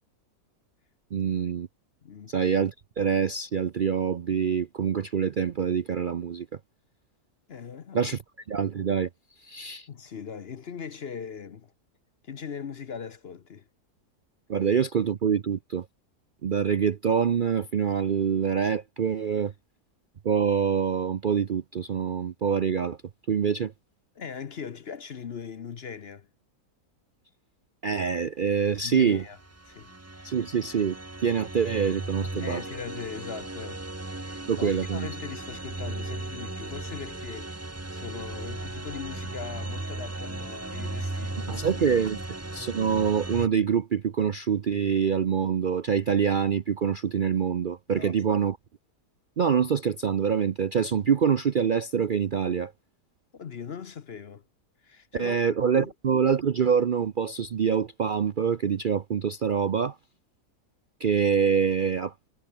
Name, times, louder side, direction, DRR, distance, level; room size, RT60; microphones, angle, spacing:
voice 1, 1.1-1.7 2.3-6.5 7.9-8.2 8.5-9.1 9.4-9.9 14.5-15.9 16.4-19.5 20.2-23.0 23.3-23.7 27.8-29.2 30.2-31.0 31.2-32.6 34.5-35.1 41.5-42.2 42.5-48.6 49.4-52.7 55.1-60.0 61.0-62.1, right 7 dB, 60° right, 0.5 m, -25 dB
voice 2, 2.0-2.3 7.5-8.2 9.9-11.7 12.2-13.7 24.1-26.3 28.8-29.4 29.7-30.3 32.4-37.6 37.9-41.7 47.9-48.4 53.3-54.4 54.8-55.4 55.7-55.9, left 6 dB, 50° left, 0.9 m, -40 dB
sound 1, 29.1-43.5, right 2 dB, 10° right, 0.8 m, -36 dB
omnidirectional pair, 1.7 m